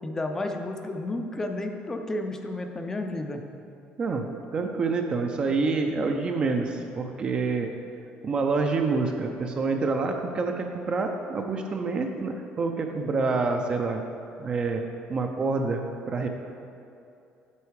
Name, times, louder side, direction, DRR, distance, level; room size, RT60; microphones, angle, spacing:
voice 1, 0.0-3.4 13.0-13.3, left 2 dB, 15° left, 5 dB, 0.5 m, -32 dB
voice 2, 4.5-7.7 8.2-14.0 14.4-14.8 15.1-16.3, right 4 dB, 30° right, 4 dB, 0.5 m, -27 dB
8.3 x 5.5 x 4.7 m, 2.7 s
cardioid pair, 155°, 3 cm